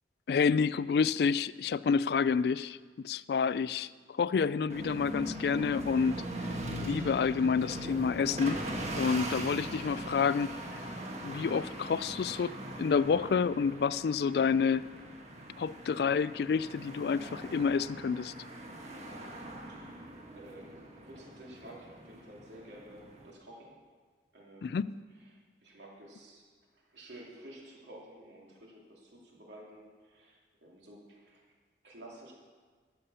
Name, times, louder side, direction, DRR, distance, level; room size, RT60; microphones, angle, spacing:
voice 1, 0.3-3.9 4.2-6.3 6.9-8.6 9.0-10.5 11.2-14.9 15.6-18.3 24.6-24.9, left 6 dB, 60° left, 18 dB, 0.3 m, -29 dB
sound 1, 4.7-23.3, right 1 dB, 40° right, 1.4 m, -41 dB
voice 2, 19.7-23.7 24.3-24.9 25.1-31.4 31.8-32.3, right 1 dB, 80° right, -2 dB, 2.8 m, -52 dB
12.5 x 7.2 x 6.8 m, 1.5 s
head